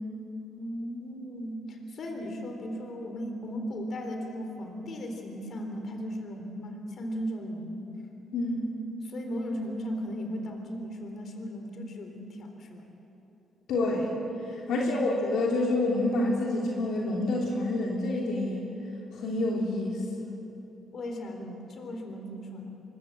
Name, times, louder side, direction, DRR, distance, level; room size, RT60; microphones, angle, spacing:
voice 1, 0.6-7.9 9.0-12.9 14.7-15.0 20.9-22.7, equal, 55° left, 4 dB, 3.8 m, -37 dB
voice 2, 8.3-8.7 13.7-14.1 14.5-18.6 19.1-20.3, left 2 dB, 80° left, -2 dB, 3.2 m, -28 dB
24.5 x 22.5 x 7.6 m, 3.0 s
cardioid pair, 90°, 0 cm